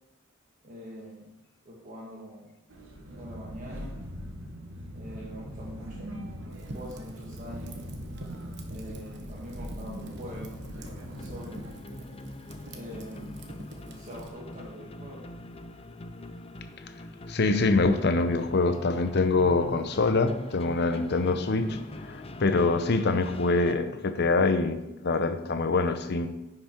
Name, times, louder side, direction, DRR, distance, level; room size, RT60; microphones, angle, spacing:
voice 1, 0.6-1.3 1.6-2.5 3.1-3.9 4.9-6.1 6.6-7.8 8.7-11.7 12.7-13.6 13.8-15.2, equal, 40° right, -4 dB, 1.4 m, -44 dB
sound 1, 2.7-11.7, equal, 75° right, 1.7 m, -41 dB
Fire, 6.5-14.3, right 1 dB, 60° right, 1.1 m, -46 dB
sound 2, 10.2-23.7, left 1 dB, 30° left, 0.5 m, -43 dB
voice 2, 17.3-26.3, left 3 dB, 55° left, 9 dB, 0.8 m, -25 dB
10.0 x 5.9 x 4.4 m, 0.91 s
head